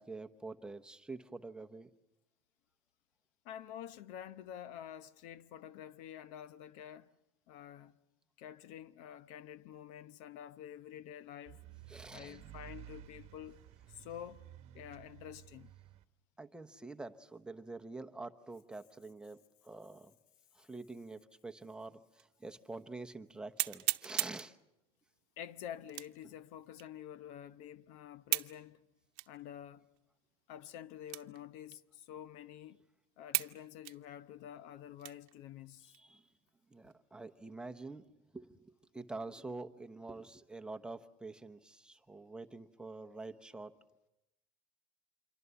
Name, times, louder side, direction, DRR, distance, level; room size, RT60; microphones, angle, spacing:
voice 1, 0.0-1.9 11.9-12.4 16.4-20.1 20.5-24.6 35.9-36.3 36.7-38.1 38.3-43.7, right 3 dB, 5° right, 0.9 m, -47 dB
voice 2, 3.4-7.1 7.5-8.0 8.4-11.6 12.1-14.5 14.7-15.7 25.4-28.8 29.3-29.9 30.5-32.8 33.2-35.9, left 10 dB, 65° left, 0.9 m, -49 dB
sound 1, 11.5-16.0, right 12 dB, 50° right, 1.1 m, -54 dB
sound 2, 22.2-22.3 22.8-22.9 23.6-24.5 25.9-26.3 26.8-26.9 28.3-28.6 29.2-29.3 30.0-30.1 31.1-31.4 31.7-31.8 32.5-32.6 33.3-33.6 33.8-35.3 35.8-36.0 36.5-36.9, right 23 dB, 70° right, 0.9 m, -36 dB
27.0 x 24.0 x 7.0 m
supercardioid pair, 130°, 14 cm